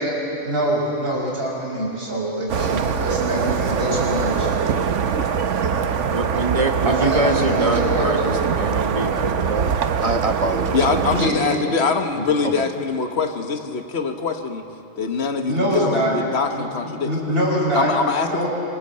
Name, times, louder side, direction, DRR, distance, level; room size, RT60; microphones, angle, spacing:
voice 1, 0.0-4.5 6.9-8.2 11.2-11.4 12.1-12.3 15.5-16.1 16.5-16.6 17.0-17.9 18.2-18.5, right 1 dB, 50° right, -4 dB, 6.8 m, -24 dB
sound 1, 2.5-11.3, right 6 dB, 70° right, 1.2 m, -23 dB
voice 2, 6.1-9.7 10.0-11.8 12.4-12.7, right 2 dB, 25° right, 5 dB, 1.4 m, -25 dB
voice 3, 10.7-14.6 15.0-17.1 17.7-18.5, left 5 dB, 55° left, 6 dB, 1.7 m, -23 dB
27.0 x 25.0 x 7.7 m, 2.8 s
omnidirectional pair, 1.3 m